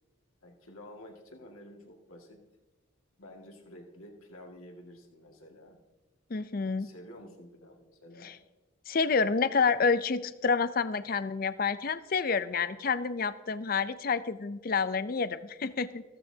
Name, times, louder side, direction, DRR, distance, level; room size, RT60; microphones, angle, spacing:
voice 1, 0.4-2.4 3.2-5.8 6.7-8.3, left 1 dB, 90° left, 1 dB, 2.0 m, -50 dB
voice 2, 6.3-6.9 8.2-8.3 8.9-16.0, left 5 dB, 45° left, 14 dB, 0.5 m, -28 dB
15.0 x 14.5 x 2.8 m, 1.1 s
head